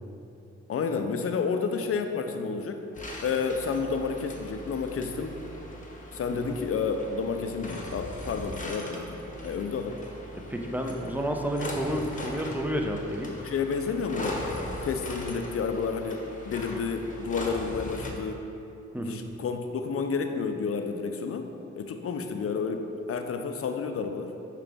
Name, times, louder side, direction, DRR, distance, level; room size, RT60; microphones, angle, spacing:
voice 1, 0.7-2.8 3.2-5.4 6.1-10.0 13.4-14.4 14.8-18.5 19.0-21.5 21.8-24.3, left 5 dB, 50° left, 6 dB, 0.6 m, -30 dB
sound 1, 2.9-18.1, left 1 dB, 25° left, 1.0 m, -39 dB
voice 2, 10.3-13.5 18.9-19.2, equal, 5° right, 3 dB, 0.6 m, -31 dB
5.7 x 4.8 x 3.5 m, 2.9 s
supercardioid pair, 55°, 30 cm